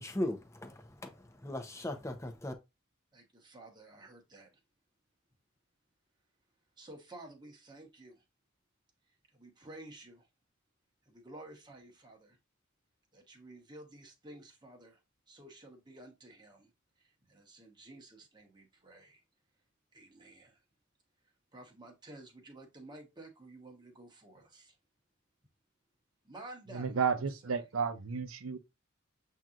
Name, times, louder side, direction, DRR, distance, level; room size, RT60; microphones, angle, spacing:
voice 1, 0.0-2.5, left 1 dB, 15° left, 0.7 m, -38 dB
voice 2, 3.1-4.6 6.8-8.2 9.1-10.3 11.0-12.4 13.1-15.0 15.3-16.7 17.0-19.2 19.9-20.6 21.5-24.8 26.2-27.6, right 2 dB, 20° right, 1.1 m, -52 dB
voice 3, 26.7-28.6, right 6 dB, 80° right, 0.6 m, -32 dB
7.4 x 2.8 x 2.5 m
head